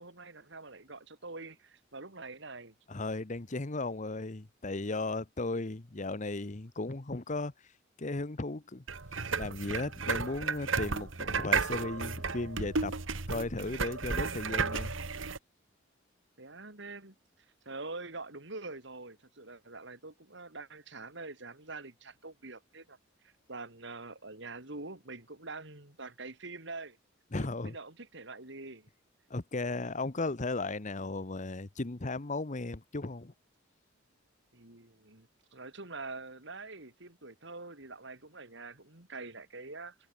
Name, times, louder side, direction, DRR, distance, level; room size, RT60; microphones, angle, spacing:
voice 1, 0.0-2.7 16.4-17.1 17.6-23.0 23.2-27.0 27.4-28.9 34.5-40.0, right 3 dB, 65° right, 4.2 m, -45 dB
voice 2, 2.9-7.5 8.0-8.8 9.4-12.9 13.3-15.0 27.3-27.7 29.3-33.3, left 2 dB, 40° left, 1.1 m, -36 dB
sound 1, 8.9-15.4, right 4 dB, 85° right, 2.0 m, -33 dB
head